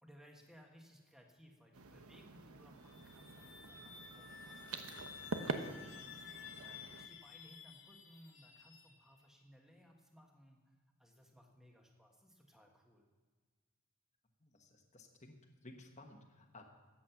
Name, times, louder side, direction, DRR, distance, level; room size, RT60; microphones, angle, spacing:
voice 1, 0.0-13.0, equal, ahead, 1 dB, 1.5 m, -63 dB
sound 1, 1.7-7.1, right 3 dB, 85° right, 1.0 m, -46 dB
sound 2, 2.8-9.4, left 6 dB, 65° left, 2.0 m, -54 dB
voice 2, 14.4-16.6, left 2 dB, 35° left, 3 dB, 1.3 m, -57 dB
14.0 x 8.6 x 5.8 m, 1.4 s
head